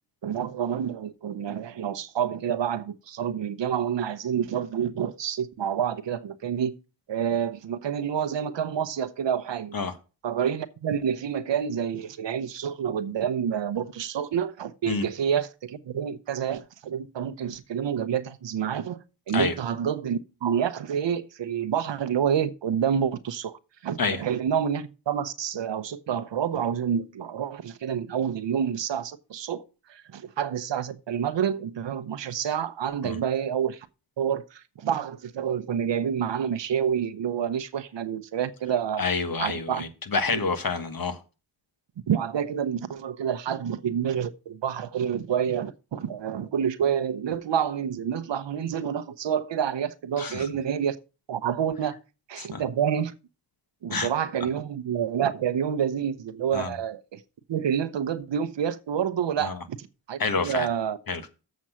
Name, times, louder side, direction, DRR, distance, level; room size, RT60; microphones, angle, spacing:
voice 1, 0.2-6.7 7.1-9.7 10.2-29.6 29.9-33.9 34.2-39.0 39.4-39.8 40.3-40.4 42.1-51.0 51.3-52.0 52.3-53.1 53.8-57.2 57.5-61.0, right 8 dB, 70° right, 0.8 m, -28 dB
voice 2, 39.0-41.2 50.2-50.4 52.4-52.6 53.9-54.1 56.5-56.7 59.4-59.6 60.2-60.7 61.1-61.2, left 4 dB, 50° left, 1.5 m, -28 dB
7.5 x 6.3 x 5.7 m
cardioid pair, 50°, 46 cm